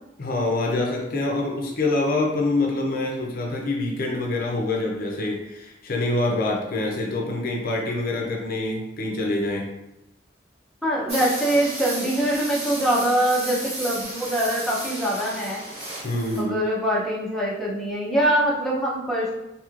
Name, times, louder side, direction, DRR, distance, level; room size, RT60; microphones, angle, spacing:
voice 1, 0.2-9.7 16.0-16.6, left 2 dB, 50° left, 0 dB, 0.5 m, -25 dB
voice 2, 10.8-15.6 16.4-19.3, right 1 dB, ahead, -6 dB, 0.6 m, -23 dB
sound 1, 11.1-16.4, right 1 dB, 35° right, 1.4 m, -33 dB
3.0 x 2.7 x 2.4 m, 0.89 s
head